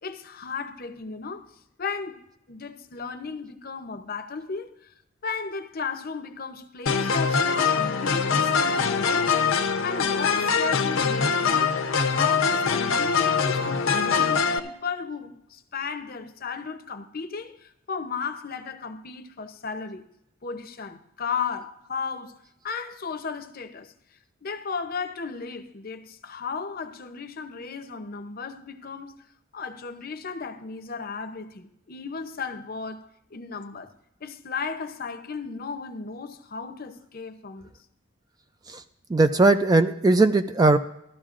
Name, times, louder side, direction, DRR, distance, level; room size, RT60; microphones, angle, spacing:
voice 1, 0.0-1.5 1.8-2.2 2.5-4.9 5.2-9.4 9.8-20.0 20.4-23.9 24.4-29.2 29.5-33.9 34.2-37.7, left 5 dB, 45° left, 0.7 m, -35 dB
sound 1, 6.9-14.6, left 5 dB, 80° left, 0.7 m, -23 dB
voice 2, 39.1-40.8, right 2 dB, 20° right, 0.3 m, -19 dB
15.5 x 12.5 x 2.5 m
head